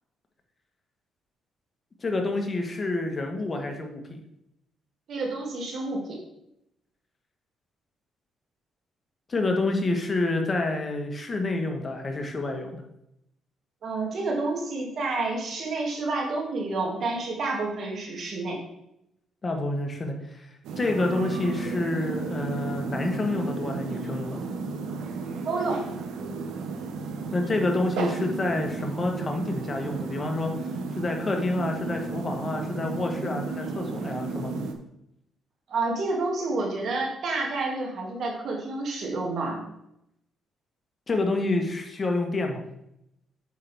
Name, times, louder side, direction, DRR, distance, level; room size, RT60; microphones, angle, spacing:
voice 1, 2.0-4.2 9.3-12.8 19.4-24.4 27.3-30.5 31.0-34.5 41.1-42.6, left 2 dB, 30° left, 3 dB, 1.3 m, -28 dB
voice 2, 5.1-6.2 13.8-18.6 25.4-25.8 35.7-39.6, right 3 dB, 60° right, -1 dB, 2.4 m, -29 dB
sound 1, 20.6-34.7, right 4 dB, 85° right, 0.8 m, -33 dB
8.2 x 5.7 x 3.5 m, 0.80 s
cardioid pair, 90°, 0 cm